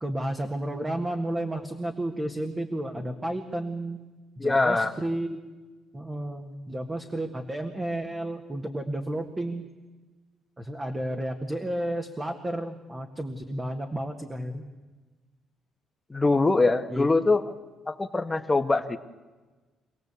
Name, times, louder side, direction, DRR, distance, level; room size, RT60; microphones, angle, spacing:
voice 1, 0.0-4.0 4.4-5.4 5.9-9.6 10.6-14.6 16.9-17.1, right 1 dB, 15° right, 4 dB, 1.7 m, -32 dB
voice 2, 4.4-4.9 16.1-17.4 17.9-19.0, left 3 dB, 15° left, 9 dB, 1.3 m, -23 dB
26.5 x 17.5 x 8.4 m, 1.3 s
cardioid pair, 115°, 0 cm